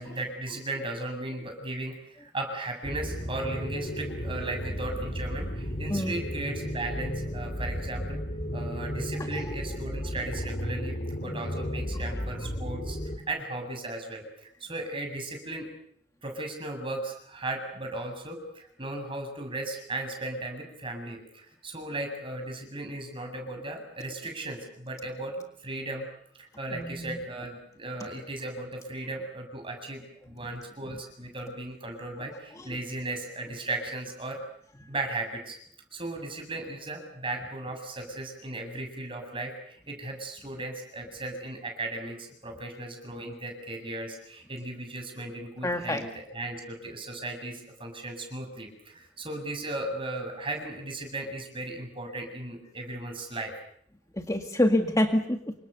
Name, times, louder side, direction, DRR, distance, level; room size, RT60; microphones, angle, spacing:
voice 1, 0.0-8.2 8.5-13.0 13.3-15.7 16.2-26.1 26.4-34.4 34.9-35.6 35.9-53.5, right 2 dB, 30° right, 4 dB, 7.6 m, -36 dB
sound 1, 2.8-13.2, equal, 45° left, 2.9 m, -34 dB
voice 2, 5.9-6.2 12.1-12.2 26.7-27.2 32.6-32.7 45.6-46.1 54.1-55.5, left 1 dB, 20° left, 4 dB, 2.0 m, -27 dB
29.0 x 26.0 x 6.9 m, 0.65 s
head